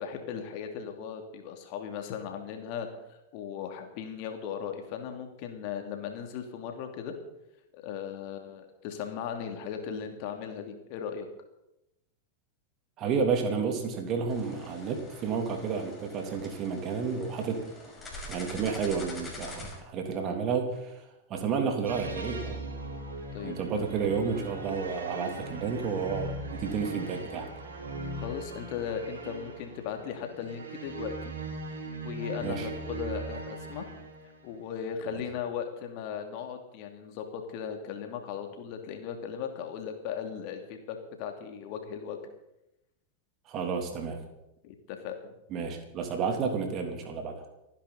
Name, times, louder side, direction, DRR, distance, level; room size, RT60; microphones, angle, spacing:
voice 1, 0.0-7.1 7.7-11.3 23.3-23.8 28.1-31.3 31.7-33.9 34.4-42.2 44.6-45.3, left 7 dB, 45° left, 5 dB, 2.9 m, -37 dB
voice 2, 13.0-17.6 18.2-20.9 21.3-22.6 23.4-27.5 32.4-32.7 35.1-35.2 43.5-44.2 45.5-47.3, right 5 dB, 35° right, 4 dB, 3.3 m, -31 dB
sound 1, 14.3-19.8, left 1 dB, 15° left, 6.3 m, -45 dB
sound 2, 21.8-34.4, right 2 dB, 65° right, 4.2 m, -39 dB
29.5 x 10.5 x 4.3 m, 0.88 s
figure-of-eight pair, 90°, 0 cm